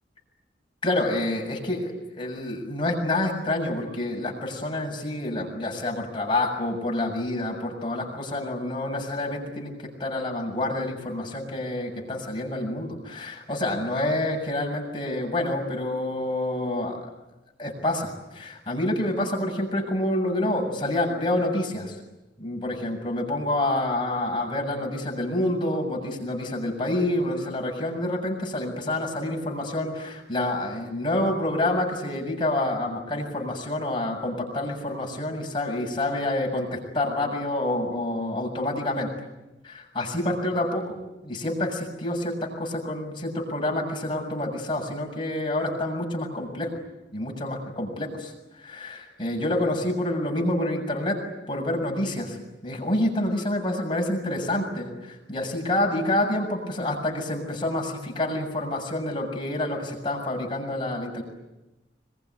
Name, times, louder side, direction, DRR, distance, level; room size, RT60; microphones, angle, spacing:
voice 1, 0.8-9.7 10.0-17.1 17.6-21.9 22.4-39.1 39.6-41.0 41.2-46.7 47.1-48.3 48.6-51.2 51.5-52.4 52.6-54.9 55.3-61.2, left 1 dB, 25° left, 1 dB, 7.2 m, -28 dB
26.0 x 23.0 x 9.7 m, 1.0 s
head